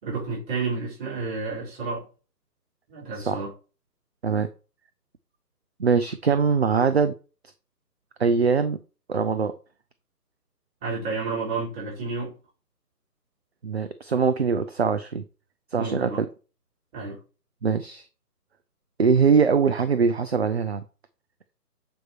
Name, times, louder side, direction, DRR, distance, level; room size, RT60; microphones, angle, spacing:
voice 1, 0.0-2.1 2.9-3.5 10.8-12.3 15.8-16.2 16.9-17.2, right 4 dB, 20° right, 4.2 m, -30 dB
voice 2, 5.8-7.1 8.2-8.8 9.1-9.5 13.6-15.2 15.7-16.1 17.6-18.0 19.0-20.8, right 5 dB, 40° right, 0.5 m, -22 dB
7.6 x 5.3 x 4.4 m
figure-of-eight pair, 140°, 49 cm